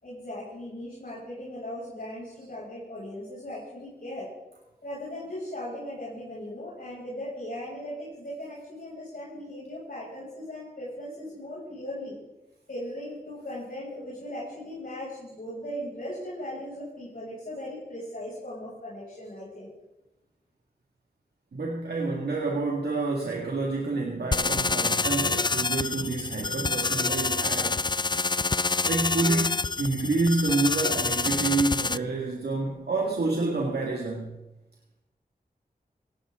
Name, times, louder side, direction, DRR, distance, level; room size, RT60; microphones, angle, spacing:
voice 1, 0.0-4.3 4.8-12.2 12.7-19.7, left 1 dB, 65° left, -7 dB, 6.5 m, -38 dB
voice 2, 21.5-27.8 28.9-34.4, right 3 dB, 85° right, -1 dB, 2.0 m, -28 dB
sound 1, 24.3-32.0, left 3 dB, 30° left, 0.4 m, -27 dB
17.5 x 16.5 x 3.7 m, 0.97 s
cardioid pair, 45°, 16 cm